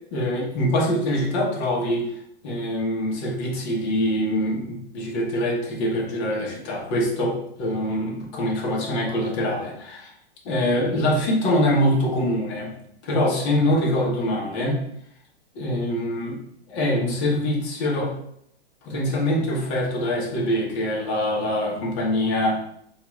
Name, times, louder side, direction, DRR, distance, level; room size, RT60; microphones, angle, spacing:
voice 1, 0.1-2.1 2.4-10.1 10.4-12.7 13.0-14.8 15.5-18.1 18.8-22.6, left 1 dB, 30° left, -3 dB, 0.9 m, -24 dB
4.5 x 2.4 x 3.0 m, 0.71 s
hypercardioid pair, 165°, 31 cm